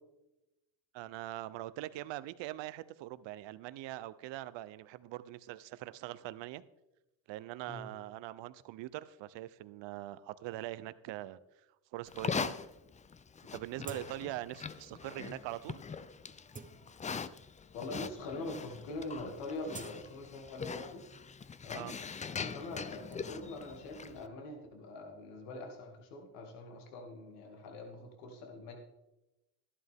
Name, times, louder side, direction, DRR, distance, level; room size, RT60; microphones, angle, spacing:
voice 1, 0.9-6.6 7.3-11.4 11.9-12.5 13.5-15.8 21.7-21.9, right 15 dB, 60° right, 16 dB, 0.7 m, -42 dB
Livestock farm animals working animals, 12.1-24.3, left 5 dB, 15° left, 0.4 m, -42 dB
sound 1, 13.8-14.5 14.9-15.0 15.7-15.8 16.3-17.4 18.1-18.2 18.4-18.8 19.1-20.9 21.2-23.1, right 4 dB, 15° right, 0.8 m, -51 dB
voice 2, 17.7-21.0 21.6-21.9 22.3-28.8, left 2 dB, 80° left, 2 dB, 2.5 m, -44 dB
12.5 x 11.5 x 3.6 m, 0.94 s
supercardioid pair, 85°, 50 cm